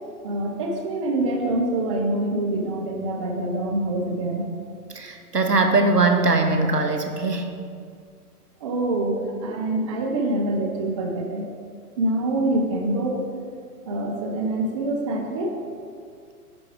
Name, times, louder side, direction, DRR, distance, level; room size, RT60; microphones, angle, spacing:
voice 1, 0.2-4.5 8.6-11.5 12.0-13.2 13.9-15.6, right 1 dB, 20° right, 1 dB, 0.5 m, -25 dB
voice 2, 4.9-7.5, right 3 dB, 90° right, 5 dB, 0.9 m, -21 dB
9.8 x 4.7 x 3.4 m, 2.2 s
figure-of-eight pair, 115°, 46 cm